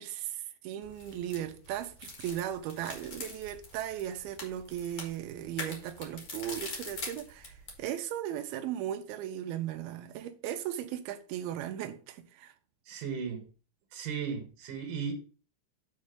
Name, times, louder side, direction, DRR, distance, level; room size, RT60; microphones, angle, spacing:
voice 1, 0.0-12.5, right 11 dB, 80° right, 2.3 m, -37 dB
sound 1, 0.8-7.8, left 3 dB, 65° left, 1.2 m, -44 dB
voice 2, 12.9-13.4 13.9-15.1, right 6 dB, 65° right, 2.6 m, -36 dB
7.4 x 3.1 x 6.2 m
omnidirectional pair, 4.9 m